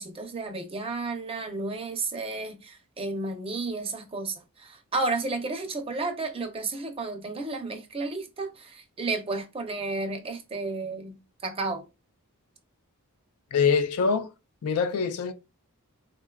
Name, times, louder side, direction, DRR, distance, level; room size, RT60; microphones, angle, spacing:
voice 1, 0.0-4.3 4.6-11.1 11.4-11.8, right 3 dB, 25° right, 0.5 m, -32 dB
voice 2, 13.5-14.3 14.6-15.3, left 5 dB, 75° left, 0.4 m, -24 dB
3.8 x 2.3 x 2.2 m
head